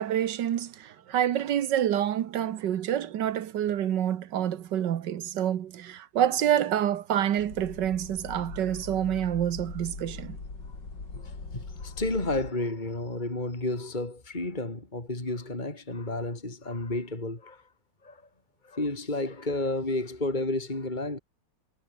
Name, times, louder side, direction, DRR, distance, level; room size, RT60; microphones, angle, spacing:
voice 1, 0.0-10.4, right 10 dB, 70° right, 1.7 m, -27 dB
sound 1, 7.4-12.5, left 3 dB, 65° left, 5.0 m, -41 dB
voice 2, 11.1-17.6 18.0-18.2 18.6-21.2, left 2 dB, 25° left, 3.7 m, -31 dB
omnidirectional pair, 2.0 m